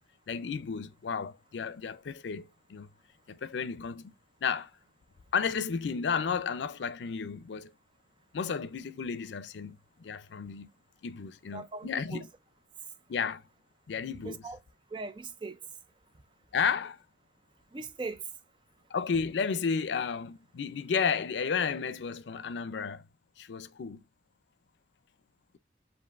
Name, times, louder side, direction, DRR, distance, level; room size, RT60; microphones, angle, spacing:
voice 1, 0.3-2.9 3.3-4.1 4.4-4.7 5.3-7.7 8.3-10.7 11.0-12.3 13.1-13.4 13.9-14.4 16.5-17.0 18.9-23.0 23.4-24.0, left 6 dB, 90° left, 0.4 m, -32 dB
voice 2, 11.5-12.3 14.2-14.6 14.9-15.6 17.7-18.2, right 3 dB, 25° right, 0.4 m, -39 dB
7.3 x 2.6 x 2.4 m
head